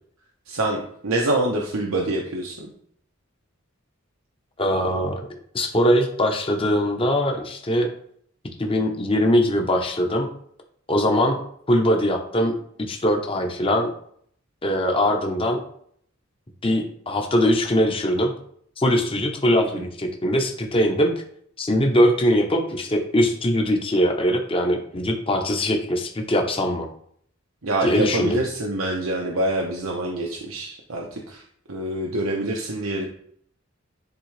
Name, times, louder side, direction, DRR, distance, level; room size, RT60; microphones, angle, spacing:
voice 1, 0.5-2.7 19.6-19.8 27.6-31.4 31.7-33.1, right 1 dB, 90° right, -1 dB, 0.9 m, -26 dB
voice 2, 4.6-5.1 5.5-7.9 8.6-10.3 10.9-11.4 11.7-12.5 12.9-13.9 14.6-15.6 16.6-18.3 18.8-21.1 21.6-26.9 27.8-28.4, equal, 25° left, 3 dB, 0.9 m, -21 dB
10.5 x 3.6 x 3.3 m, 0.64 s
head